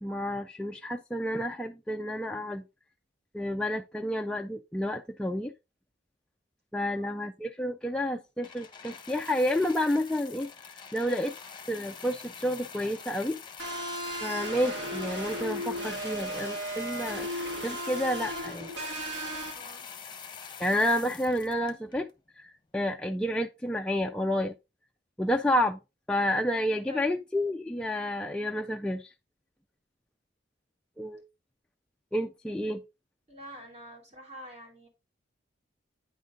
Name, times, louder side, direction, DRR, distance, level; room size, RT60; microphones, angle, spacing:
voice 1, 0.0-2.6 3.3-5.5 6.7-10.5 10.9-11.3 11.7-13.4 14.2-18.7 20.6-22.1 22.4-24.5 25.2-25.8 26.1-29.1 31.0-31.2 32.1-32.8, left 1 dB, 5° left, 0.3 m, -30 dB
sound 1, 8.4-22.1 22.9-23.0, left 6 dB, 25° left, 0.9 m, -45 dB
sound 2, 13.6-19.5, equal, 90° right, 1.9 m, -35 dB
voice 2, 19.5-19.9 26.9-27.2 33.3-34.9, equal, 40° right, 2.7 m, -47 dB
9.2 x 3.8 x 3.7 m
head